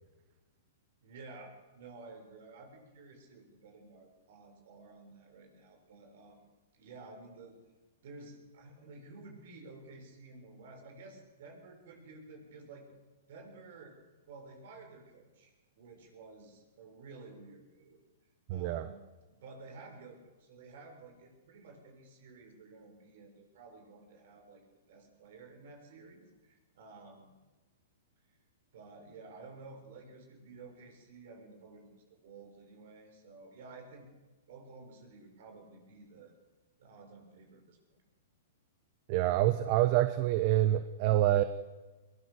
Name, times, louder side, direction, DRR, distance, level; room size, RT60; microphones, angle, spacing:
voice 1, 1.0-6.4 6.7-7.6 8.0-12.9 13.3-14.0 14.3-18.0 18.5-19.0 19.3-27.3 28.7-34.1 34.5-36.3 36.8-38.0, right 3 dB, 65° right, 4 dB, 6.8 m, -52 dB
voice 2, 18.5-18.9 39.1-41.4, right 14 dB, 45° right, 11 dB, 1.1 m, -27 dB
22.0 x 19.5 x 6.8 m, 1.2 s
hypercardioid pair, 125°, 0 cm